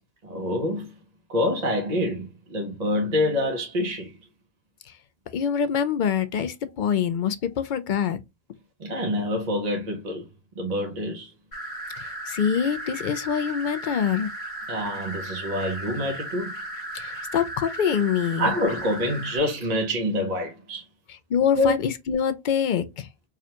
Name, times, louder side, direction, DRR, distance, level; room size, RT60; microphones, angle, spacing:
voice 1, 0.2-0.9 1.3-4.2 8.8-10.3 10.6-11.3 14.7-16.6 18.4-20.9 21.5-21.7, left 1 dB, 45° right, 0.9 m, -26 dB
voice 2, 5.3-8.2 12.3-14.3 16.9-18.5 21.3-23.1, left 8 dB, 55° left, 0.6 m, -25 dB
sound 1, 11.5-19.4, right 1 dB, 80° left, 2.4 m, -35 dB
4.8 x 2.3 x 2.8 m
omnidirectional pair, 1.1 m